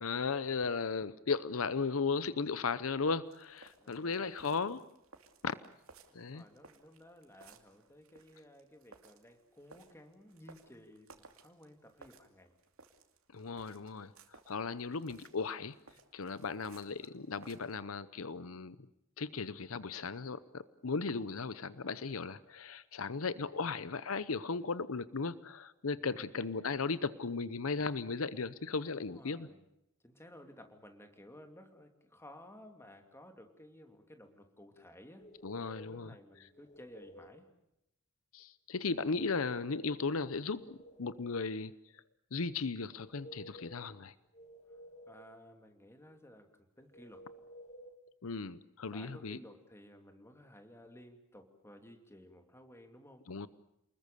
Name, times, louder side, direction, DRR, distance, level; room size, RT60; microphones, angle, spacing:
voice 1, 0.0-4.8 5.4-5.6 6.1-6.4 13.3-14.1 14.5-15.7 16.1-18.8 19.2-29.5 35.4-36.1 38.3-41.7 42.3-44.1 48.2-49.4 53.3-53.5, left 4 dB, 75° left, 16 dB, 0.8 m, -36 dB
sound 1, 3.3-17.8, right 4 dB, 80° right, 2.7 m, -61 dB
voice 2, 3.8-4.7 6.1-12.5 23.6-23.7 26.0-26.5 28.9-29.6 30.0-35.3 35.9-37.5 45.1-47.3 48.9-53.3, left 1 dB, 10° left, 5 dB, 2.8 m, -56 dB
sound 2, 35.2-36.1 36.5-37.4 39.0-40.0 40.3-41.4 42.9-43.9 44.3-45.3 46.9-48.0, equal, 35° left, 1.9 m, -53 dB
29.5 x 21.0 x 6.9 m, 0.83 s
head